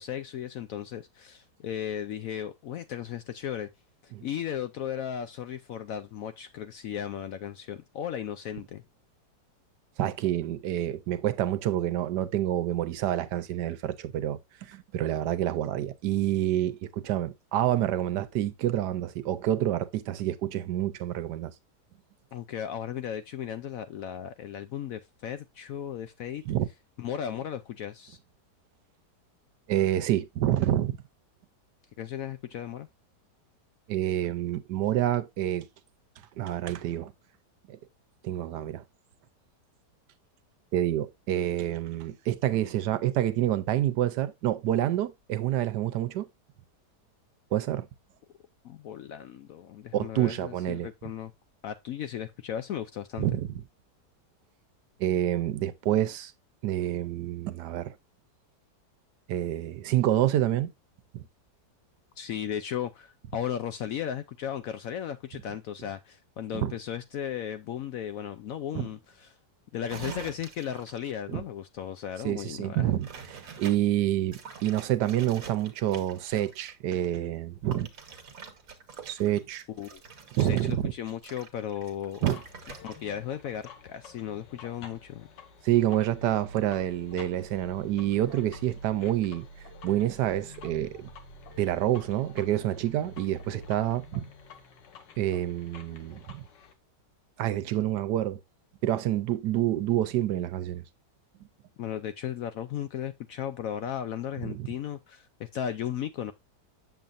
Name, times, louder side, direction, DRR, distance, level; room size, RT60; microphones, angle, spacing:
voice 1, 0.0-3.7 4.0-8.8 22.3-26.4 27.0-28.2 32.0-32.9 48.6-51.3 51.6-53.3 62.2-69.4 69.7-72.9 79.7-80.0 80.4-82.2 82.8-85.3 101.8-106.3, left 9 dB, 70° left, 0.8 m, -36 dB
voice 2, 10.0-21.5 26.5-26.7 29.7-31.0 33.9-35.7 36.4-37.1 37.7-37.8 38.2-38.8 40.7-46.3 47.5-47.9 49.9-50.9 53.2-53.5 55.0-56.3 56.6-57.9 59.3-60.7 61.1-61.2 66.5-66.7 68.7-68.9 71.3-71.4 72.2-77.9 79.1-79.6 80.3-80.9 82.2-82.4 85.6-89.4 89.8-91.1 91.6-94.2 95.2-96.4 97.4-98.4 98.8-100.8 104.4-104.7, right 12 dB, 75° right, 1.2 m, -28 dB
sound 1, 69.9-71.1 73.0-73.8 74.3-76.7 77.7-83.1 83.4-83.7, right 6 dB, 55° right, 1.5 m, -45 dB
sound 2, 82.2-96.7, left 1 dB, 90° left, 1.9 m, -48 dB
7.7 x 7.1 x 2.5 m
omnidirectional pair, 1.9 m